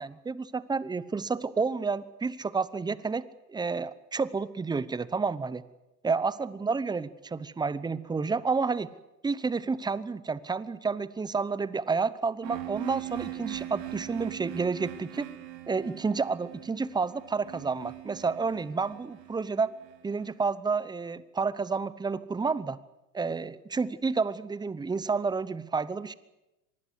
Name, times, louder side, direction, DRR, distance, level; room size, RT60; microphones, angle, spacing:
voice 1, 0.0-3.2 3.5-5.6 6.0-8.9 9.2-15.3 15.7-19.7 20.0-22.8 23.1-26.1, right 4 dB, 10° right, 17 dB, 0.9 m, -30 dB
sound 1, 12.4-20.2, right 14 dB, 75° right, 4.1 m, -41 dB
25.0 x 20.5 x 8.0 m, 0.96 s
hypercardioid pair, 105°, 50 cm